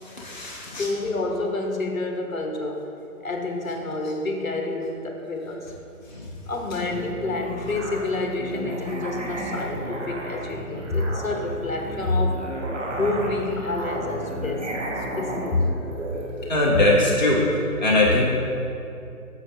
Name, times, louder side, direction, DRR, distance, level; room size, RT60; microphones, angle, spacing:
voice 1, 0.0-0.9 6.1-6.2 16.5-17.5 17.8-18.2, left 1 dB, 30° left, -4 dB, 0.5 m, -21 dB
voice 2, 0.7-2.9 3.2-5.7 6.5-12.5 13.0-15.7 16.7-16.9, left 2 dB, 60° left, 2 dB, 1.1 m, -28 dB
Musical instrument, 6.6-16.8, right 1 dB, 50° right, 1.4 m, -33 dB
8.9 x 6.6 x 2.7 m, 2.6 s
figure-of-eight pair, 150°, 45 cm